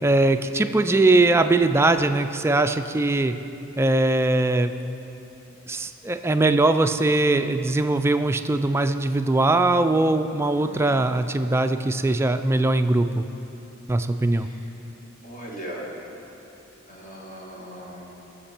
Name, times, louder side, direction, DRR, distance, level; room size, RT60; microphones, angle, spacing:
voice 1, 0.0-3.3 3.8-4.7 5.7-13.3 13.9-14.5, right 2 dB, 15° right, 8 dB, 0.4 m, -21 dB
voice 2, 10.5-10.9 14.3-14.7 15.2-15.9 16.9-18.1, equal, 40° left, -4 dB, 1.9 m, -39 dB
19.5 x 7.2 x 4.4 m, 3.0 s
head